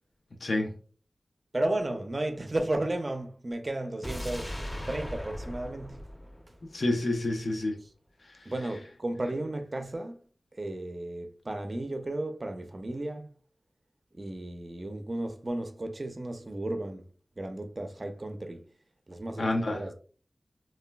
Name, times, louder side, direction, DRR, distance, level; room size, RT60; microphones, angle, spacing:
voice 1, 0.4-0.7 6.7-7.8 8.3-8.5 19.4-19.8, left 2 dB, 70° left, 0.4 m, -29 dB
voice 2, 1.5-4.6 4.9-6.1 8.4-10.2 10.5-13.3 14.1-17.1 17.4-18.7 19.1-19.9, right 1 dB, 45° right, 0.4 m, -34 dB
sound 1, 4.0-7.2 7.5-7.6, equal, 15° left, 0.5 m, -39 dB
3.0 x 2.2 x 2.2 m
cardioid pair, 40°, 0 cm